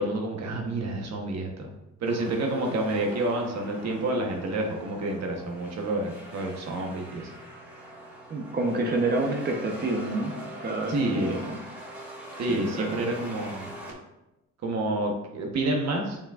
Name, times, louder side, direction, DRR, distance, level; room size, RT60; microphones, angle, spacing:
voice 1, 0.0-1.7 2.0-7.3 10.9-11.4 12.4-13.7 14.6-16.2, right 2 dB, 60° right, 1 dB, 1.1 m, -29 dB
sound 1, 2.0-13.9, equal, 5° right, 1.9 m, -42 dB
voice 2, 8.3-10.3 10.6-11.5 12.5-13.0, right 2 dB, 30° right, 1 dB, 0.9 m, -28 dB
7.1 x 5.4 x 2.5 m, 0.95 s
cardioid pair, 90°, 30 cm